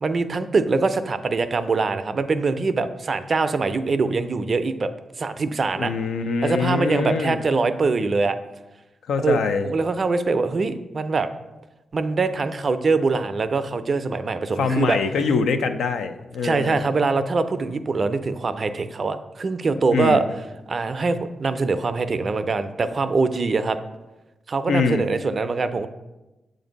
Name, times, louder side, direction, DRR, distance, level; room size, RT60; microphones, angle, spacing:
voice 1, 0.0-4.9 5.2-5.9 6.4-8.4 9.2-11.3 11.9-15.0 16.4-20.2 20.7-23.8 24.5-25.9, right 4 dB, 50° right, 10 dB, 0.4 m, -23 dB
voice 2, 5.7-7.4 9.1-9.7 14.5-16.8 19.9-20.2 24.7-25.1, left 5 dB, 85° left, 8 dB, 0.4 m, -23 dB
7.2 x 2.6 x 5.1 m, 1.0 s
cardioid pair, 65°, 0 cm